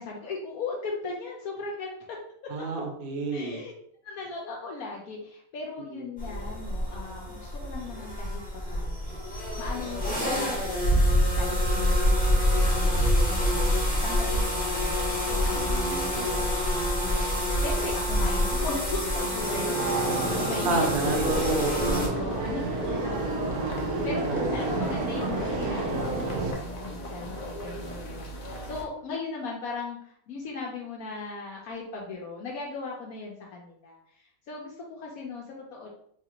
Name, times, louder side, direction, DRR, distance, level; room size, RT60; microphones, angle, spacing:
voice 1, 0.0-2.0 3.3-3.7 4.0-8.4 8.7-9.1 9.6-21.2 21.9-35.9, left 3 dB, 75° left, -2 dB, 1.1 m, -38 dB
voice 2, 2.5-3.6 5.9-6.1 15.5-16.5 20.6-22.2 24.3-24.5, right 3 dB, 55° right, 2 dB, 0.6 m, -30 dB
sound 1, 6.2-22.1, equal, 5° left, 0.8 m, -26 dB
sound 2, 19.2-26.5, right 2 dB, 75° right, 1.3 m, -30 dB
sound 3, 20.8-28.8, equal, 45° left, 0.5 m, -38 dB
4.1 x 2.4 x 2.9 m, 0.66 s
omnidirectional pair, 1.6 m